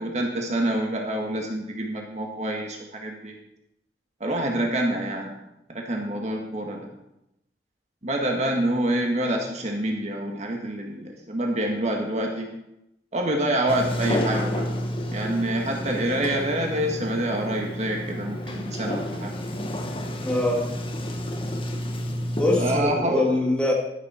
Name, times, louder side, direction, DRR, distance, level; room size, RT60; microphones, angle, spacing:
voice 1, 0.0-3.3 4.2-5.3 5.7-6.9 8.0-12.5 13.1-14.6 15.1-19.3 22.6-23.3, right 1 dB, 40° right, 1 dB, 1.6 m, -27 dB
Sliding door, 13.7-22.8, equal, 30° left, 1.2 m, -30 dB
voice 2, 20.2-20.8 22.4-23.7, left 2 dB, 5° left, -2 dB, 2.1 m, -23 dB
13.0 x 7.4 x 5.6 m, 0.86 s
head